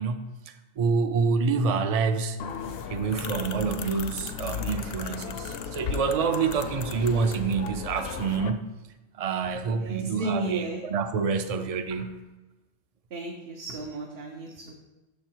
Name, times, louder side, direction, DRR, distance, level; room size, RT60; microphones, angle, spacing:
voice 1, 0.0-2.4 2.9-8.7 9.1-12.2, right 5 dB, 50° right, 9 dB, 0.5 m, -27 dB
sound 1, 2.4-8.5, left 6 dB, 65° left, 0.7 m, -35 dB
voice 2, 9.4-10.8 11.9-12.1 13.1-14.7, right 3 dB, 70° right, 1 dB, 1.0 m, -34 dB
6.9 x 5.3 x 4.5 m, 1.1 s
omnidirectional pair, 1.1 m